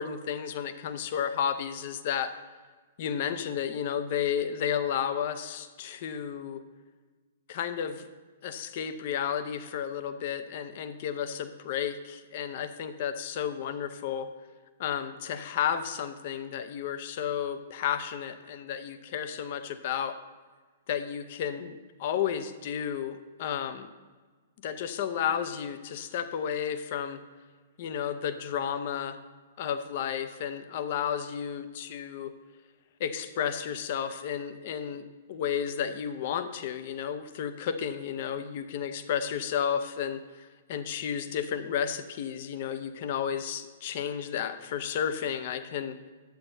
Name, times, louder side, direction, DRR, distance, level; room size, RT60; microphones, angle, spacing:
voice 1, 0.0-2.3 3.0-6.6 7.5-8.1 8.4-14.3 14.8-20.1 20.9-23.9 24.6-27.2 27.8-29.2 29.6-32.3 33.0-46.1, left 8 dB, 50° left, 10 dB, 0.6 m, -32 dB
11.5 x 8.6 x 2.7 m, 1.4 s
figure-of-eight pair, 110°, 0 cm